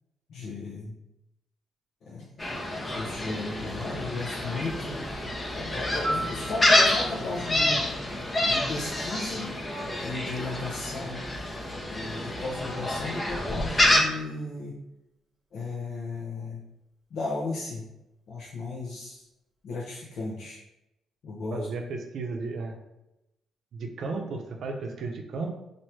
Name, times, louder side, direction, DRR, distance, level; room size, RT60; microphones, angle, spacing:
voice 1, 0.3-1.0 2.0-2.3 3.0-5.2 5.5-7.8 8.4-9.6 10.0-11.2 11.9-14.8 15.5-16.6 17.1-17.9 18.3-19.2 19.6-20.6 21.2-21.7, left 3 dB, 65° left, -5 dB, 0.7 m, -35 dB
Gull seagull, 2.4-14.0, left 1 dB, 25° left, 0.7 m, -28 dB
Piano, 6.0-9.0 17.1-17.3, right 1 dB, 35° right, 1.2 m, -37 dB
voice 2, 21.5-22.8 23.7-25.5, right 3 dB, 60° right, 4 dB, 0.6 m, -34 dB
3.0 x 2.6 x 4.4 m, 0.90 s
cardioid pair, 90°, 0 cm